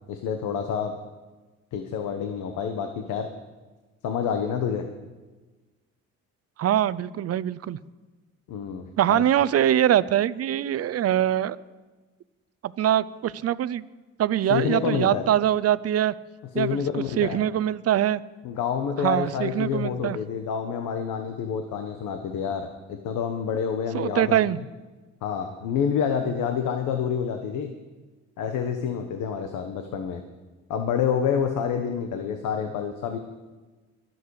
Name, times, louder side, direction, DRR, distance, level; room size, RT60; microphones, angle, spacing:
voice 1, 0.1-0.9 1.7-3.3 4.0-4.8 8.5-9.2 14.5-15.3 16.5-17.4 18.4-24.4 25.2-27.7 28.4-30.2 30.7-33.2, left 7 dB, 90° left, 6 dB, 1.2 m, -28 dB
voice 2, 6.6-7.8 9.0-11.6 12.6-13.8 14.2-16.1 16.5-16.8 17.2-18.2 19.0-20.2 23.9-24.6, right 11 dB, 55° right, 17 dB, 0.6 m, -23 dB
23.5 x 7.9 x 4.8 m, 1.2 s
cardioid pair, 90°, 30 cm